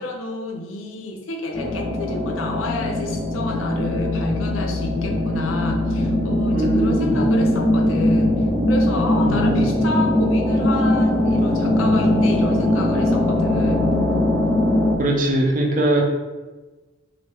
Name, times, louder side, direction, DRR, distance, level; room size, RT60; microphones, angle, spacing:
voice 1, 0.0-8.3 8.7-13.9, left 2 dB, 80° left, 3 dB, 0.5 m, -29 dB
sound 1, 1.5-15.0, left 1 dB, 5° right, 0.6 m, -20 dB
voice 2, 6.5-7.2 9.2-9.8 15.0-16.0, right 1 dB, 45° right, 1 dB, 0.5 m, -21 dB
3.2 x 2.5 x 3.1 m, 1.2 s
head